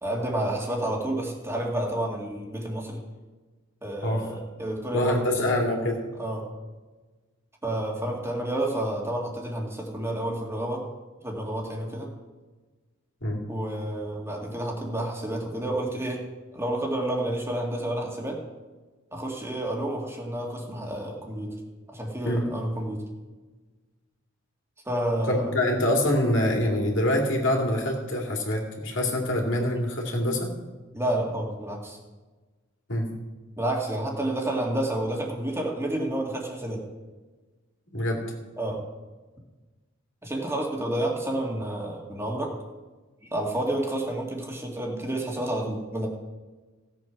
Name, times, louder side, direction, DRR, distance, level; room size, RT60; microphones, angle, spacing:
voice 1, 0.0-3.0 3.8-5.3 6.2-6.5 7.6-10.8 11.2-12.1 13.5-16.2 16.5-18.4 19.1-21.5 21.9-23.0 24.9-25.5 30.9-32.0 33.6-36.8 38.6-38.8 40.2-42.5 43.2-46.1, right 1 dB, 15° right, 0 dB, 2.0 m, -30 dB
voice 2, 4.9-5.9 13.2-13.4 22.2-22.4 25.3-30.5 32.9-33.1 37.9-38.2, left 1 dB, 70° left, 0 dB, 2.8 m, -25 dB
16.0 x 7.8 x 6.0 m, 1.3 s
head